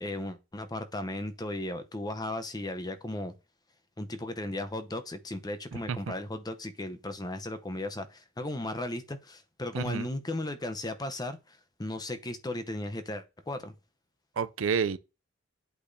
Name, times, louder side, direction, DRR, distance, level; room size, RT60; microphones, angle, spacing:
voice 1, 0.0-3.3 4.0-13.8, left 1 dB, 20° left, 0.8 m, -36 dB
voice 2, 9.7-10.1 14.4-15.0, right 6 dB, 85° right, 0.5 m, -29 dB
8.5 x 8.2 x 2.7 m
head